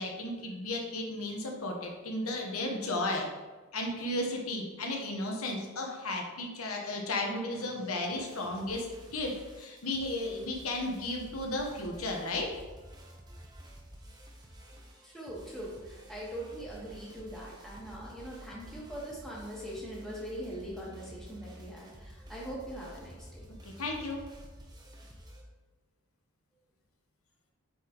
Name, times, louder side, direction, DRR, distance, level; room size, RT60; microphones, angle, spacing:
voice 1, 0.0-3.3 3.7-8.9 9.1-12.5 23.8-24.2, left 2 dB, 85° left, 1 dB, 1.1 m, -34 dB
sound 1, 7.5-25.4, equal, 20° right, 0.8 m, -51 dB
voice 2, 15.0-23.5, right 1 dB, ahead, -6 dB, 1.4 m, -42 dB
8.2 x 4.0 x 3.0 m, 1.3 s
head